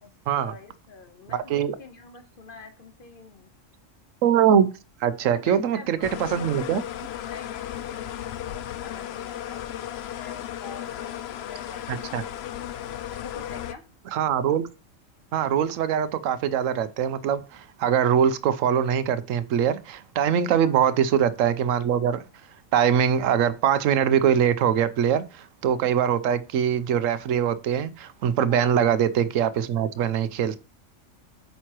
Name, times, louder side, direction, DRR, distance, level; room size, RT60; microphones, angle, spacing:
voice 1, 0.4-3.5 5.3-6.3 7.2-12.7 13.1-13.8 20.6-20.9 28.5-28.8, left 4 dB, 45° left, 1.2 m, -46 dB
voice 2, 1.3-1.7 4.2-4.7 5.0-6.8 11.9-12.2 14.1-14.7 15.3-22.2 22.7-30.6, right 8 dB, 85° right, 1.0 m, -23 dB
sound 1, 6.0-13.7, left 11 dB, 65° left, 0.7 m, -35 dB
8.9 x 5.7 x 2.9 m
omnidirectional pair, 1.3 m